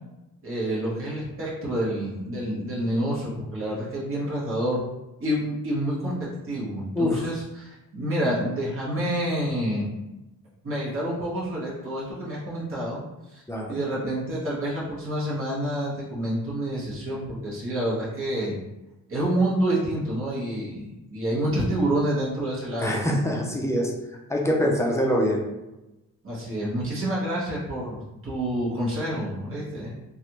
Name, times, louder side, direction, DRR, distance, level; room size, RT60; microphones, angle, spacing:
voice 1, 0.4-4.8 5.2-9.9 10.6-13.0 13.3-13.4 13.7-18.6 19.1-23.0 26.2-29.9, right 1 dB, 40° right, -6 dB, 1.0 m, -28 dB
voice 2, 13.5-13.8 22.8-23.9 24.3-25.4, equal, 10° left, -1 dB, 0.4 m, -24 dB
3.2 x 2.4 x 2.9 m, 0.98 s
wide cardioid pair, 155°, 33 cm